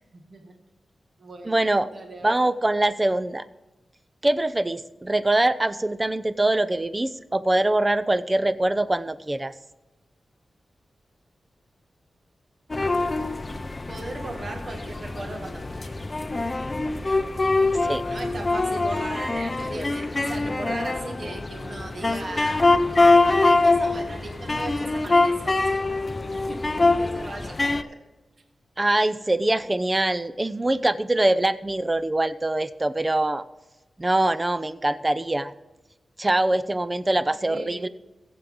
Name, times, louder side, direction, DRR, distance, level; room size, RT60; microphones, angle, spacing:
voice 1, 0.1-0.5 1.2-1.7 1.9-2.4 13.9-16.0 17.6-22.7 23.2-25.8 26.5-28.0 37.4-37.9, right 2 dB, 50° right, 2 dB, 1.9 m, -38 dB
voice 2, 1.4-1.9 2.2-3.4 4.2-9.5 17.8-18.0 28.8-33.4 34.0-35.5 36.2-37.9, right 1 dB, 20° right, 13 dB, 0.6 m, -23 dB
sound 1, 12.7-27.8, left 3 dB, 25° left, 0.6 m, -24 dB
22.5 x 7.8 x 3.8 m, 1.1 s
wide cardioid pair, 125°, 0 cm